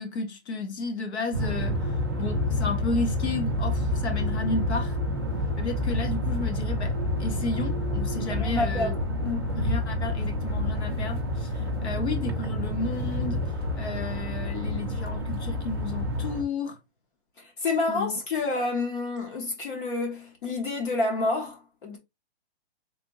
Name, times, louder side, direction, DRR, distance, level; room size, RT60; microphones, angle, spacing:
voice 1, 0.0-5.0 5.6-9.0 9.5-13.4 13.8-16.8 17.9-18.2, left 3 dB, 75° left, 1.2 m, -33 dB
sound 1, 1.3-16.4, left 1 dB, 25° right, 0.4 m, -28 dB
voice 2, 8.3-9.0 9.2-9.5 17.4-22.0, left 3 dB, 50° left, 1.1 m, -29 dB
3.4 x 2.7 x 3.0 m
hypercardioid pair, 175°, 34 cm